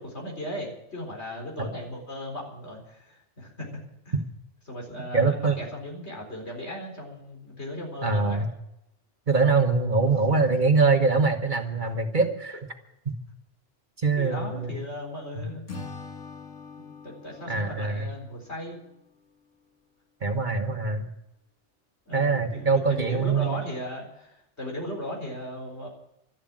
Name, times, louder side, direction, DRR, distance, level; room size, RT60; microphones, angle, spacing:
voice 1, 0.0-4.1 4.7-8.4 9.9-10.1 14.2-15.7 16.8-18.8 22.1-25.9, equal, 70° left, 0 dB, 4.5 m, -37 dB
voice 2, 5.1-5.6 8.0-8.5 9.3-12.5 13.1-13.2 14.0-14.7 15.4-15.5 17.5-18.1 20.2-21.1 22.1-23.6, right 4 dB, 45° right, 5 dB, 1.4 m, -23 dB
Acoustic guitar / Strum, 15.7-19.0, left 4 dB, 90° left, 2.1 m, -43 dB
12.5 x 11.0 x 8.9 m, 0.83 s
omnidirectional pair, 1.2 m